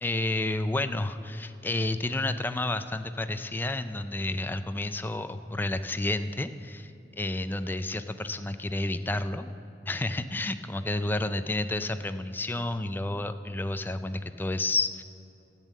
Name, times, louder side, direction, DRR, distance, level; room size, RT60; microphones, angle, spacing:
voice 1, 0.0-9.5 9.9-15.0, left 2 dB, 10° left, 10 dB, 0.4 m, -30 dB
12.5 x 8.2 x 7.4 m, 2.8 s
head